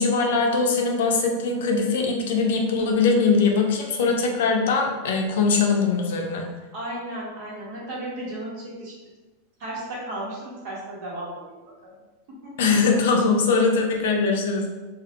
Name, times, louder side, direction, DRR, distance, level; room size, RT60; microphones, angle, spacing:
voice 1, 0.0-6.5 12.6-14.7, left 4 dB, 80° left, 2 dB, 0.4 m, -21 dB
voice 2, 6.7-9.0 9.6-11.9 12.4-12.5 13.5-13.6, right 1 dB, 55° right, -5 dB, 1.1 m, -34 dB
2.3 x 2.0 x 2.8 m, 1.2 s
supercardioid pair, 130°, 0 cm